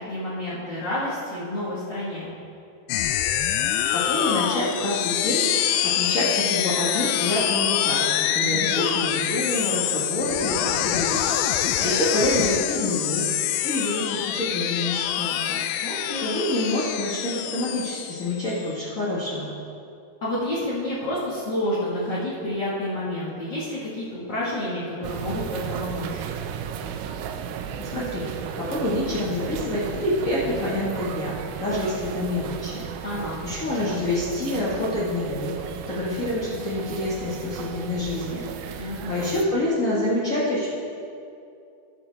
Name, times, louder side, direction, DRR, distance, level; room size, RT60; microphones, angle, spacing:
voice 1, 0.1-2.3 8.4-8.8 15.8-16.3 20.2-26.2 33.0-33.4 38.8-39.3, left 1 dB, 45° left, -11 dB, 1.5 m, -29 dB
sound 1, 2.9-18.7, left 11 dB, 85° left, 2.5 m, -25 dB
voice 2, 3.6-11.2 11.8-13.2 13.6-19.5 27.8-31.3 31.6-32.8 33.4-35.5 35.9-40.7, left 1 dB, 60° left, -9 dB, 0.8 m, -27 dB
sound 2, 25.0-39.4, right 8 dB, 85° right, 2.2 m, -34 dB
19.5 x 6.9 x 3.4 m, 2.5 s
omnidirectional pair, 4.7 m